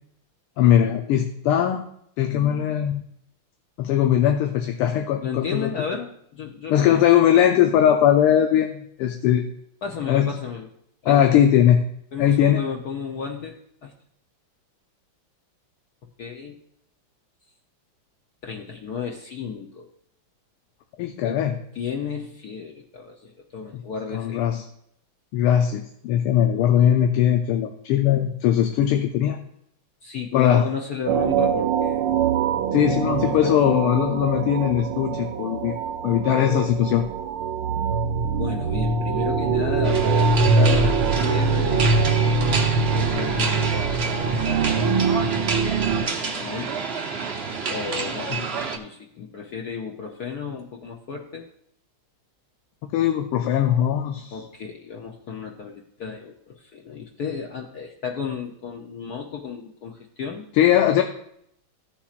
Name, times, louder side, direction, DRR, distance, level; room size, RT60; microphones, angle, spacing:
voice 1, 0.6-1.8 2.2-3.0 3.8-5.7 6.7-9.4 10.1-10.3 11.1-11.8 12.2-12.6 21.0-21.6 23.7-23.8 24.1-24.6 25.3-29.4 30.3-30.7 32.7-35.8 36.0-37.1 48.3-48.4 52.9-54.4 60.5-61.0, left 10 dB, 90° left, 4 dB, 1.6 m, -20 dB
voice 2, 5.2-7.0 9.8-10.7 11.0-11.3 12.1-13.9 16.2-16.6 18.4-19.9 21.2-21.4 21.7-24.4 30.0-32.2 32.8-33.6 38.4-41.9 42.9-44.9 46.0-46.7 47.7-48.3 48.7-51.5 54.3-60.5, left 6 dB, 60° left, 1 dB, 1.0 m, -33 dB
sound 1, 31.1-46.1, right 4 dB, 85° right, 1.6 m, -23 dB
sound 2, 39.8-48.8, right 4 dB, 50° right, 0.7 m, -29 dB
14.5 x 7.2 x 2.5 m, 0.71 s
omnidirectional pair, 2.4 m